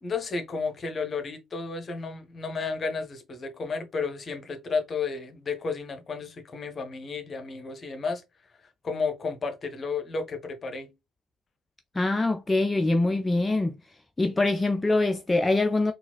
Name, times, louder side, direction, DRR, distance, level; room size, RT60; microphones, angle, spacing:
voice 1, 0.0-8.2 8.8-10.9, left 4 dB, 40° left, 0.8 m, -32 dB
voice 2, 11.9-13.8 14.2-15.9, left 2 dB, 20° left, 0.4 m, -24 dB
3.9 x 2.4 x 2.2 m
hypercardioid pair, 50°, 0 cm